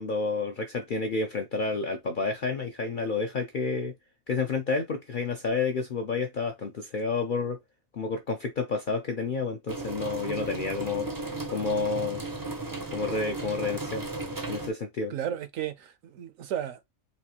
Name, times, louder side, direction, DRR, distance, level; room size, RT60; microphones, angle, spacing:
voice 1, 0.0-3.9 4.3-7.6 7.9-11.1 11.5-12.2 12.9-14.1 14.5-15.1, left 4 dB, 60° left, 0.5 m, -30 dB
sound 1, 9.7-14.7, right 2 dB, 30° right, 0.4 m, -35 dB
voice 2, 15.1-16.8, right 10 dB, 80° right, 1.1 m, -34 dB
4.1 x 2.4 x 2.8 m
omnidirectional pair, 1.4 m